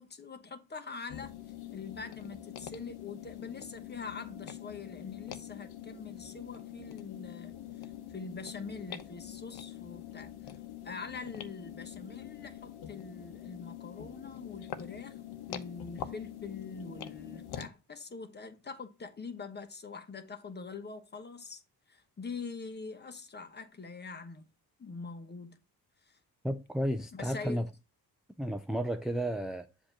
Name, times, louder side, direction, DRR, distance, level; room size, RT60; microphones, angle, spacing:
voice 1, 0.0-1.3 1.7-10.5 10.8-15.2 15.5-21.6 21.9-24.5 24.8-25.6 26.0-26.2 27.1-27.6, left 4 dB, 25° left, 1.2 m, -44 dB
sound 1, 1.1-17.7, left 11 dB, 80° left, 1.0 m, -45 dB
voice 2, 26.4-27.7 28.4-29.7, equal, ahead, 0.4 m, -32 dB
7.7 x 2.9 x 5.9 m
cardioid pair, 120°, 38 cm